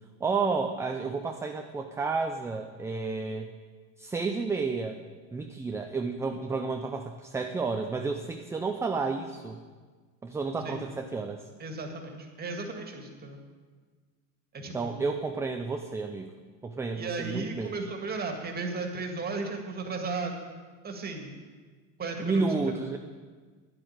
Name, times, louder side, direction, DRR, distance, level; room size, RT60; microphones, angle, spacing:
voice 1, 0.2-3.5 4.0-5.0 5.3-9.6 10.2-11.4 14.7-16.3 16.6-17.8 22.2-23.0, right 4 dB, 5° right, 4 dB, 0.3 m, -31 dB
voice 2, 11.6-13.4 14.5-15.1 17.0-20.4 20.8-21.3 22.0-22.8, right 3 dB, 25° right, 3 dB, 2.0 m, -35 dB
11.0 x 7.9 x 9.0 m, 1.5 s
supercardioid pair, 125°, 40 cm